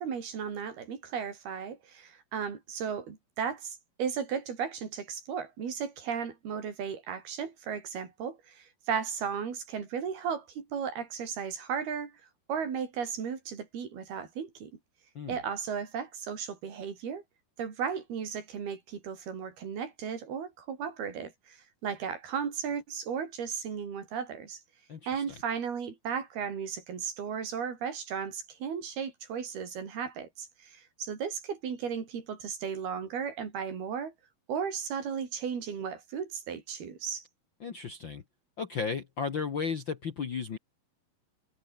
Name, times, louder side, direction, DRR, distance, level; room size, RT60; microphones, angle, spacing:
voice 1, 0.0-12.2 12.5-14.7 15.3-17.2 17.6-24.6 25.1-34.1 34.5-37.2, right 7 dB, 90° right, 5.9 m, -35 dB
voice 2, 24.9-25.2 37.6-38.2 38.6-40.6, left 5 dB, 55° left, 1.4 m, -34 dB
omnidirectional pair, 4.3 m